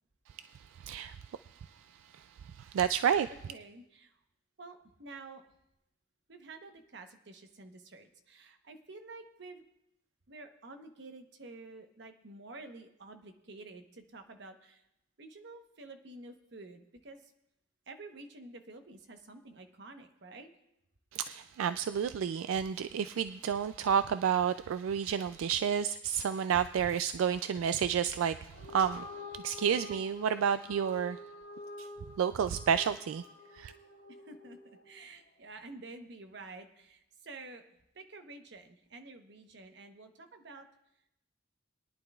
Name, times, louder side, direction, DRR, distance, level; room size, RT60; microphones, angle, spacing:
voice 1, 0.8-1.2 2.1-2.2 2.6-3.3 21.1-29.0 29.4-31.2 32.2-33.2 33.5-33.7, right 8 dB, 85° right, 12 dB, 0.3 m, -30 dB
voice 2, 3.5-4.2 4.6-5.4 6.3-9.6 10.3-14.8 15.2-17.3 17.9-20.5 34.1-37.6 37.9-40.7, right 3 dB, 55° right, 6 dB, 1.0 m, -50 dB
sound 1, 28.4-35.0, left 2 dB, 80° left, 2.4 m, -48 dB
21.5 x 10.5 x 2.3 m, 0.84 s
head